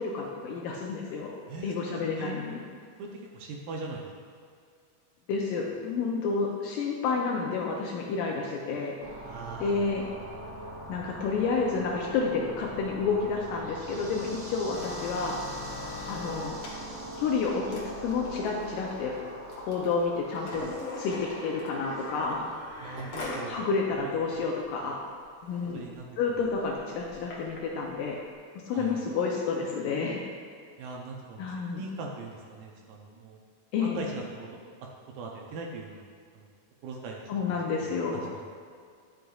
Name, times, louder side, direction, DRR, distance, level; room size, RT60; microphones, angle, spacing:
voice 1, 0.0-1.4 1.6-2.6 5.3-9.0 9.6-10.1 10.9-15.4 16.1-16.5 17.2-19.1 19.6-20.6 21.0-22.5 23.5-25.0 25.4-25.8 26.2-28.2 28.7-30.2 31.4-31.8 33.7-34.0 37.3-38.3, left 4 dB, 75° left, -1 dB, 2.1 m, -30 dB
voice 2, 1.5-2.3 3.0-4.1 9.2-9.7 22.8-23.5 24.0-24.3 25.7-26.1 28.7-29.0 30.8-33.4 33.8-34.7 35.1-36.0 36.3-36.4 36.8-37.2 37.8-38.4, right 3 dB, 75° right, 0 dB, 2.2 m, -40 dB
sound 1, 9.0-22.1, right 1 dB, 55° right, 3.2 m, -42 dB
sound 2, 14.7-23.5 23.9-24.0 24.3-24.6 25.1-25.2 25.4-25.7 26.4-27.6 28.3-28.4, left 3 dB, 60° left, 1.5 m, -41 dB
11.5 x 6.5 x 2.3 m, 2.1 s
omnidirectional pair, 4.3 m